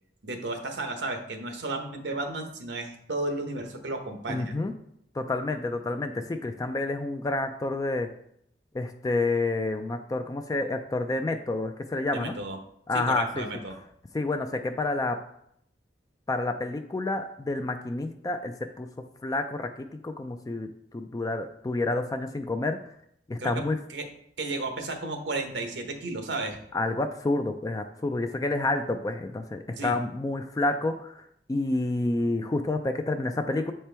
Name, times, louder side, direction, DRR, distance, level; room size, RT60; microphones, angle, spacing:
voice 1, 0.2-4.5 12.1-12.6 12.9-13.7 23.4-23.6 23.9-24.0 24.4-26.6 29.8-30.0, right 2 dB, 80° right, 4 dB, 1.0 m, -33 dB
voice 2, 4.3-4.7 5.1-8.1 8.7-12.3 12.9-13.4 14.1-15.3 16.3-22.8 23.3-23.8 26.7-31.2 31.5-33.7, left 2 dB, 20° left, 7 dB, 0.3 m, -29 dB
7.5 x 4.3 x 3.4 m, 0.72 s
head